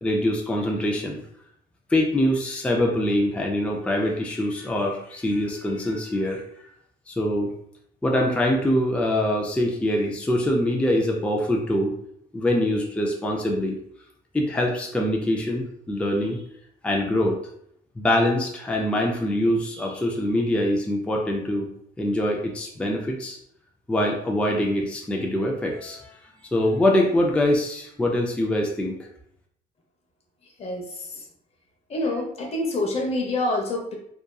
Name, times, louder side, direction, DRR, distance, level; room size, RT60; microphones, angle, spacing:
voice 1, 0.0-1.2 1.9-6.4 7.1-7.5 8.0-11.9 12.3-13.8 14.3-16.4 16.8-17.4 18.0-21.7 22.0-23.4 23.9-26.2 26.5-29.1, left 1 dB, 5° left, 0 dB, 0.4 m, -24 dB
voice 2, 30.6-31.2 31.9-34.0, left 2 dB, 35° left, 1 dB, 0.7 m, -27 dB
2.7 x 2.3 x 2.2 m, 0.70 s
cardioid pair, 110°, 17 cm